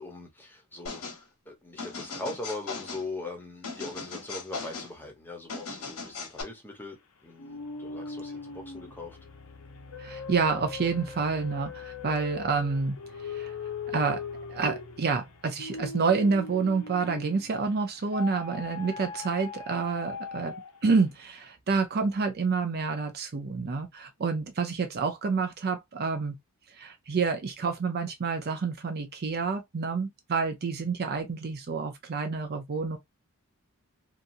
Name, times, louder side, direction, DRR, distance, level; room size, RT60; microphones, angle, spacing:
voice 1, 0.0-9.2, left 2 dB, 10° left, 0.9 m, -41 dB
sound 1, 0.9-1.2 1.8-3.1 3.6-4.9 5.5-6.4, left 4 dB, 90° left, 1.2 m, -38 dB
sound 2, 7.4-17.6 18.1-20.9, left 4 dB, 75° left, 0.7 m, -40 dB
voice 2, 10.0-13.0 13.2-13.5 13.9-14.2 14.5-20.5 20.8-26.4 26.7-33.0, right 4 dB, 45° right, 0.5 m, -28 dB
2.9 x 2.4 x 2.5 m
head